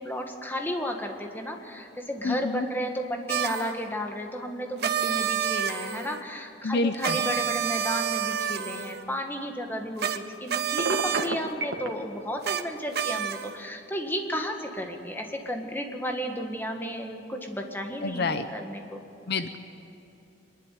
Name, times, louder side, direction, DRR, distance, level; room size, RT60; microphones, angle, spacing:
voice 1, 0.0-19.0, equal, 10° left, 3 dB, 1.7 m, -33 dB
voice 2, 2.2-2.7 6.6-7.2 18.0-18.5 19.3-19.6, left 3 dB, 60° left, 10 dB, 0.8 m, -28 dB
sound 1, 3.3-3.7 4.8-6.2 7.0-9.0 10.0-10.2 10.5-11.3 12.4-12.6 12.9-13.6, right 9 dB, 60° right, 0.9 m, -29 dB
Telephone, 10.8-11.9, right 2 dB, 90° right, 1.7 m, -28 dB
25.0 x 11.5 x 9.3 m, 2.9 s
head